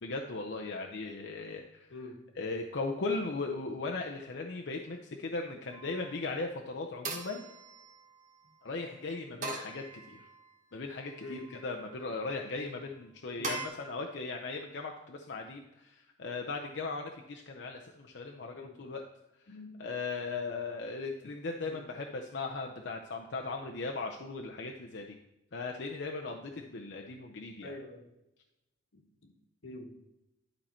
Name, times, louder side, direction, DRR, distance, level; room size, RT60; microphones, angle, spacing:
voice 1, 0.0-1.8 2.4-7.5 8.6-10.3 10.7-19.0 19.8-25.2 25.5-27.8, left 3 dB, 60° left, 2 dB, 0.6 m, -38 dB
sound 1, 5.7-6.2 7.0-8.4 9.4-10.5 11.0-11.7 13.4-13.7, right 3 dB, 40° right, 1.2 m, -41 dB
voice 2, 19.5-19.9 21.7-21.8 27.6-28.0 28.9-29.3 29.6-29.9, left 2 dB, 85° left, 2 dB, 1.4 m, -46 dB
11.5 x 4.3 x 4.4 m, 0.91 s
head